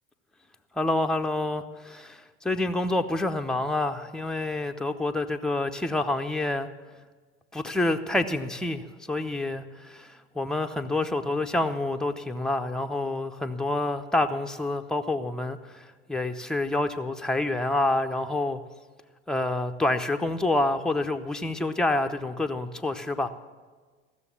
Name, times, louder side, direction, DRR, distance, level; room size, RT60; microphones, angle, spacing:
voice 1, 0.7-6.7 7.5-18.6 19.3-23.3, left 2 dB, ahead, 5 dB, 0.8 m, -28 dB
15.5 x 6.9 x 8.4 m, 1.4 s
hypercardioid pair, 70°, 35 cm